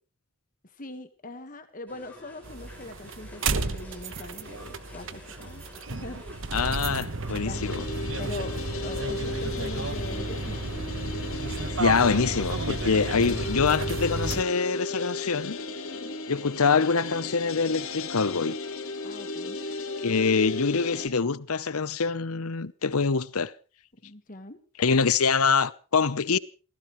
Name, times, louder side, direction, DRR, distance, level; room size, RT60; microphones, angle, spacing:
voice 1, 0.6-5.6 5.9-6.4 7.4-7.8 8.2-10.6 15.9-16.2 19.0-19.6 24.0-24.6, left 2 dB, 40° left, 1.6 m, -42 dB
sound 1, 1.9-13.2, left 2 dB, 5° left, 5.7 m, -50 dB
sound 2, 2.4-14.4, right 3 dB, 60° right, 1.2 m, -32 dB
voice 2, 6.5-7.8 11.8-15.6 16.3-18.6 20.0-23.5 24.8-26.4, left 5 dB, 85° left, 0.9 m, -25 dB
sound 3, 7.5-21.1, left 3 dB, 70° left, 3.6 m, -35 dB
28.5 x 15.5 x 3.2 m
head